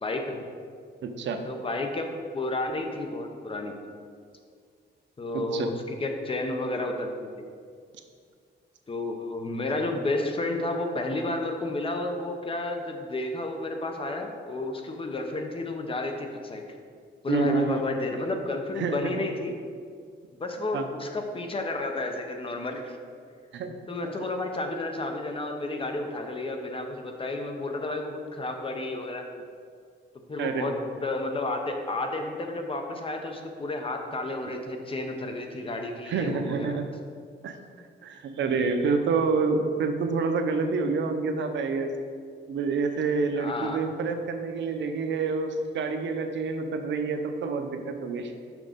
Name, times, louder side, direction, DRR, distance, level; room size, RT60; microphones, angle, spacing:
voice 1, 0.0-0.4 1.4-3.8 5.2-7.4 8.9-16.6 17.2-19.5 20.4-23.0 23.9-29.3 30.3-36.8 43.3-43.8, left 2 dB, 30° left, 4 dB, 0.8 m, -31 dB
voice 2, 1.0-1.4 5.3-5.7 17.3-17.8 18.8-19.2 20.7-20.9 23.5-23.7 24.0-24.1 30.4-30.8 36.1-36.9 37.4-37.6 38.0-41.9 42.5-48.3, right 4 dB, 75° right, 6 dB, 0.7 m, -28 dB
6.3 x 6.1 x 5.1 m, 2.1 s
cardioid pair, 135°, 19 cm